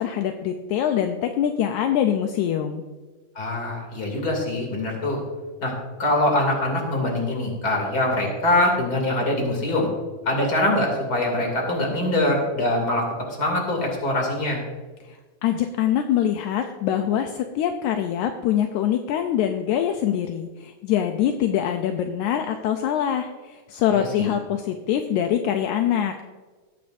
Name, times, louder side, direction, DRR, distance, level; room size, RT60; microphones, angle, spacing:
voice 1, 0.0-2.8 15.1-15.2 15.4-26.2, left 10 dB, 80° left, 5 dB, 1.9 m, -24 dB
voice 2, 3.3-5.2 5.6-5.7 6.0-9.9 10.2-13.1 13.4-14.6 23.9-24.3, left 1 dB, 30° left, 0 dB, 3.0 m, -23 dB
20.0 x 8.5 x 2.6 m, 1.3 s
omnidirectional pair, 3.6 m